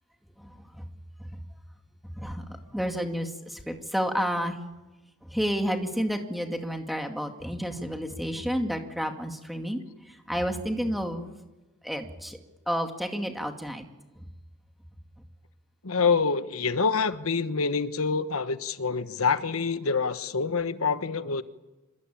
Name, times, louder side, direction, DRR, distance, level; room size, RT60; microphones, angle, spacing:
voice 1, 0.4-0.8 1.2-1.4 2.2-4.6 5.2-11.3 11.8-12.4 12.7-13.8 14.2-14.3, equal, ahead, 4 dB, 2.2 m, -31 dB
voice 2, 15.8-21.4, left 5 dB, 85° left, 11 dB, 1.1 m, -26 dB
26.5 x 23.0 x 8.8 m, 1.1 s
head